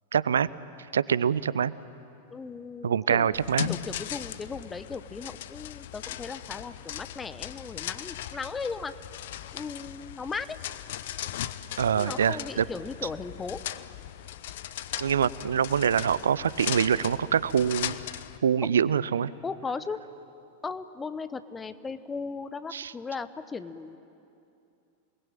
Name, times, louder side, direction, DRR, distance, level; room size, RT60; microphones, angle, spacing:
voice 1, 0.1-0.5 0.9-1.7 2.8-3.7 11.8-12.6 15.0-18.0 18.4-19.3 22.7-22.9, right 8 dB, 65° right, 19 dB, 0.6 m, -25 dB
voice 2, 2.3-3.3 3.7-8.9 9.5-10.6 11.9-13.6 18.6-18.7 19.4-20.0 20.6-24.0, left 4 dB, 15° left, 13 dB, 0.9 m, -37 dB
sound 1, 3.3-18.4, left 12 dB, 55° left, 0.7 m, -38 dB
27.5 x 20.5 x 9.0 m, 2.7 s
figure-of-eight pair, 90°, 0 cm